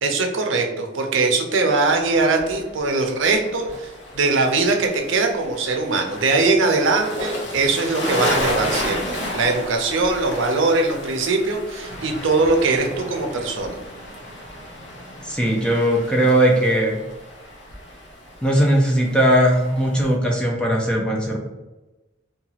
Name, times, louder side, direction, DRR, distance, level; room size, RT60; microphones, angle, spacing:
voice 1, 0.0-13.7, right 3 dB, 80° right, 3 dB, 0.5 m, -21 dB
sound 1, 1.9-20.2, left 1 dB, 65° left, 0.6 m, -33 dB
voice 2, 15.2-17.0 18.4-21.4, equal, 5° left, -1 dB, 0.3 m, -19 dB
2.8 x 2.3 x 2.7 m, 1.1 s
head